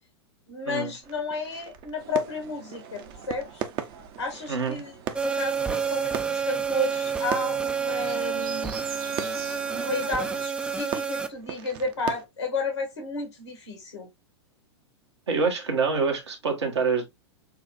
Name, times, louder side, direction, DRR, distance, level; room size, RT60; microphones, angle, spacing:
voice 1, 0.5-3.6 4.2-4.9 5.2-8.7 9.7-14.1, left 2 dB, 85° left, 2.3 m, -32 dB
sound 1, 1.0-12.2, right 9 dB, 35° right, 0.7 m, -39 dB
sound 2, 2.0-10.5, right 7 dB, 55° right, 1.1 m, -44 dB
voice 2, 4.5-4.8 15.3-17.0, right 4 dB, 75° right, 1.6 m, -26 dB
sound 3, 5.1-11.3, right 6 dB, 5° right, 0.4 m, -29 dB
6.7 x 2.4 x 2.6 m
figure-of-eight pair, 105°, 14 cm